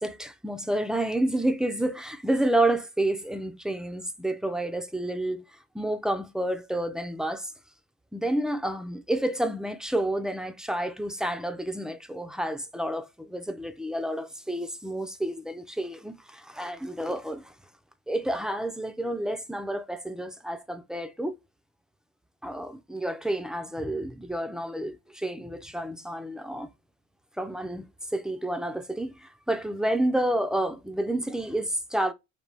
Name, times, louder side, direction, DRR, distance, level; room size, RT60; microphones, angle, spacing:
voice 1, 0.0-5.4 5.7-7.5 8.1-17.5 18.1-21.3 22.4-26.7 27.4-32.1, right 1 dB, ahead, 0.3 m, -29 dB
5.2 x 2.6 x 3.2 m
cardioid pair, 160°, 30 cm